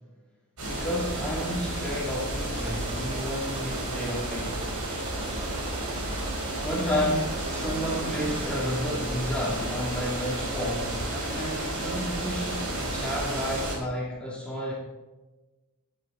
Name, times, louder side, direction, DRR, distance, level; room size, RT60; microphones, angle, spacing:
voice 1, 0.6-4.7 6.6-14.7, equal, 5° left, -5 dB, 2.6 m, -31 dB
sound 1, 0.6-13.8, right 1 dB, 75° right, 4.3 m, -32 dB
sound 2, 2.6-8.6, right 2 dB, 25° right, 1.1 m, -41 dB
11.0 x 11.0 x 4.0 m, 1.1 s
head